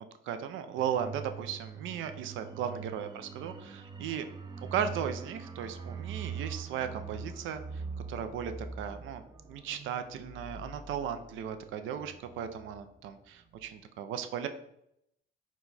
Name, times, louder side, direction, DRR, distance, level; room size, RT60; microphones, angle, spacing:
voice 1, 0.2-3.1 3.4-4.3 4.7-7.8 8.1-9.2 9.5-14.5, right 8 dB, 80° right, 9 dB, 0.4 m, -36 dB
sound 1, 0.8-13.1 13.4-13.6, right 5 dB, 20° right, 0.4 m, -43 dB
4.5 x 2.3 x 4.0 m, 0.76 s
cardioid pair, 90°, 20 cm